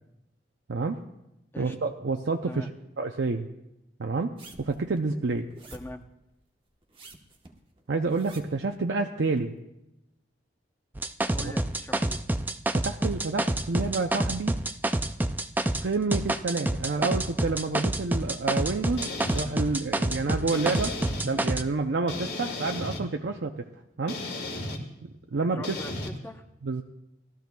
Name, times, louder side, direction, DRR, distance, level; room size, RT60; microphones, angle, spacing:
voice 1, 0.7-1.0 1.6-2.7 3.0-3.5 4.0-5.5 7.9-9.5 11.4-11.5 12.7-14.6 15.8-23.7 24.0-24.2 25.0-25.8 26.6-26.8, right 3 dB, 80° right, 3 dB, 0.6 m, -29 dB
sound 1, 4.4-6.0 6.8-8.7 9.4-9.5, right 2 dB, 30° right, 1.1 m, -49 dB
voice 2, 5.7-6.0 11.3-12.2 25.5-26.4, left 1 dB, 15° left, 5 dB, 0.8 m, -41 dB
sound 2, 10.9-21.6, right 1 dB, 10° right, 0.3 m, -27 dB
sound 3, 19.0-19.5 20.5-21.2 22.1-23.0 24.1-24.8 25.6-26.1, left 2 dB, 75° left, 1.8 m, -34 dB
20.0 x 13.5 x 2.3 m, 0.90 s
head